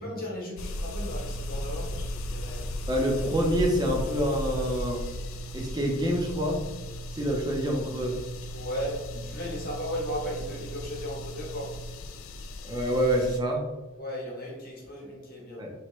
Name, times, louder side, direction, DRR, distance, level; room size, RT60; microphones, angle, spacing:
voice 1, 0.0-2.7 8.5-11.7 14.0-15.6, equal, 45° left, -3 dB, 1.1 m, -36 dB
sound 1, 0.6-13.4, left 2 dB, 65° left, 0.3 m, -37 dB
sound 2, 1.1-12.0, right 5 dB, 65° right, 0.4 m, -43 dB
voice 2, 2.9-5.0 5.5-6.6 7.1-8.1 12.6-13.6 15.6-15.7, equal, 20° right, 0 dB, 0.6 m, -27 dB
3.4 x 3.1 x 3.1 m, 1.2 s
head